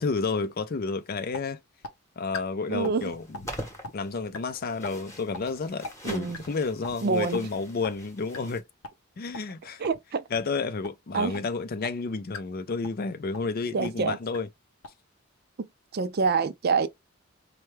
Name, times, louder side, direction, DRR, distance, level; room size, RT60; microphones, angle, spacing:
voice 1, 0.0-1.6 2.2-3.4 3.9-8.6 9.2-9.8 10.3-14.5, left 4 dB, 45° left, 0.4 m, -31 dB
sound 1, 0.9-1.0 1.3-1.4 1.8-1.9 2.3-2.4 2.8-3.0 3.3-3.5 3.8-3.9 4.3-4.4 4.8-4.9 5.3-5.4 5.8-5.9 6.3-6.5 6.8-7.0 7.3-7.4 7.8-7.9 8.3-8.4 8.8-8.9 9.3-9.4 9.8-10.0 10.3-10.4 10.8-10.9 11.3-11.4 11.8-11.9 12.3-12.4 12.8-13.0 13.3-13.5 13.8-13.9 14.3-14.4 14.8-14.9, left 3 dB, 90° left, 0.7 m, -38 dB
voice 2, 2.7-3.1 6.0-6.4 7.0-7.4 9.8-10.2 11.1-11.3 13.7-14.2 15.6-15.7 15.9-16.9, right 4 dB, 50° right, 0.4 m, -26 dB
sound 2, 2.9-8.6, equal, 15° left, 0.9 m, -44 dB
4.3 x 2.3 x 3.2 m
head